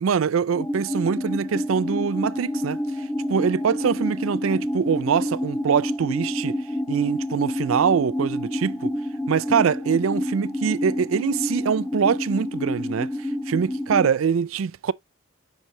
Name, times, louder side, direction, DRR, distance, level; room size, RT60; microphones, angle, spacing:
voice 1, 0.0-6.6 6.9-8.9 9.3-14.9, right 7 dB, 80° right, 0.4 m, -24 dB
sound 1, 0.5-14.1, left 1 dB, 5° left, 0.8 m, -28 dB
6.6 x 5.4 x 2.8 m
head